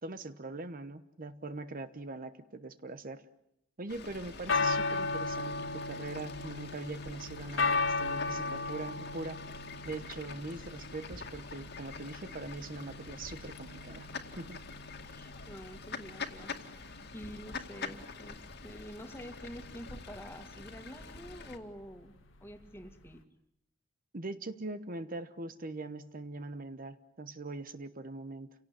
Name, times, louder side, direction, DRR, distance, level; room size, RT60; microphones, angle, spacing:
voice 1, 0.0-3.2 3.8-9.4 9.8-14.1 14.4-14.6 24.1-28.5, right 2 dB, 45° right, 11 dB, 1.1 m, -42 dB
Fowl / Bird, 3.9-21.6, left 4 dB, 60° left, 2.3 m, -46 dB
sound 1, 4.3-23.2, left 3 dB, 85° left, 1.9 m, -37 dB
voice 2, 15.0-23.2, equal, 15° left, 6 dB, 2.1 m, -48 dB
29.0 x 17.5 x 9.2 m, 0.79 s
head